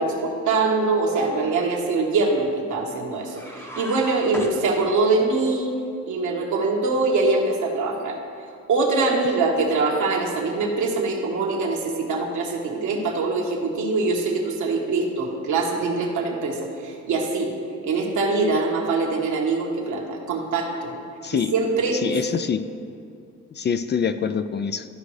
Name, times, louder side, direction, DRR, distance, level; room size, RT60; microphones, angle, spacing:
voice 1, 0.0-5.7 6.1-8.2 8.7-17.5 17.8-20.9 21.5-22.1, right 3 dB, 75° right, -1 dB, 1.5 m, -23 dB
sound 1, 3.3-5.3, equal, 10° left, 0.8 m, -36 dB
voice 2, 22.0-22.6 23.6-24.9, left 7 dB, 35° left, 11 dB, 0.4 m, -25 dB
13.5 x 5.1 x 3.3 m, 2.4 s
cardioid pair, 90°, 30 cm